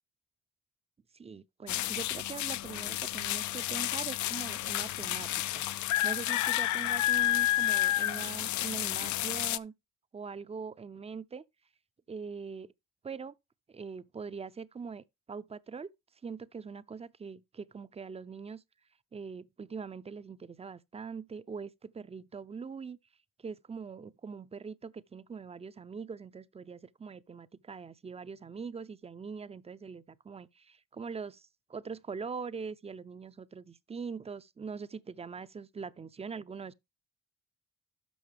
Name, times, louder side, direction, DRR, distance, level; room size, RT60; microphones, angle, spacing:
voice 1, 1.1-5.7 6.0-9.7 10.1-11.4 12.1-12.7 13.0-13.4 13.7-15.9 16.2-18.6 19.1-23.0 23.4-36.7, right 5 dB, 20° right, 0.5 m, -42 dB
sound 1, 1.7-9.6, left 14 dB, 70° left, 0.5 m, -30 dB
12.5 x 5.3 x 3.4 m
cardioid pair, 90°, 30 cm